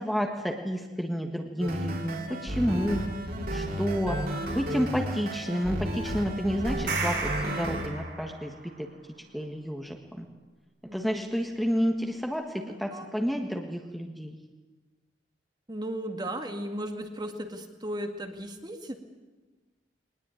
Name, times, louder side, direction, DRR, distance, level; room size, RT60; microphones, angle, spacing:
voice 1, 0.0-3.0 3.5-4.2 4.5-8.9 9.3-10.3 10.9-14.3, equal, ahead, 2 dB, 1.6 m, -30 dB
sound 1, 1.6-7.9, equal, 55° right, 4.0 m, -33 dB
sound 2, 6.7-8.6, right 4 dB, 70° right, 6.0 m, -33 dB
voice 2, 10.9-11.3 12.6-13.1 15.7-19.0, right 1 dB, 25° right, 5 dB, 2.0 m, -36 dB
21.5 x 20.0 x 9.1 m, 1.2 s
head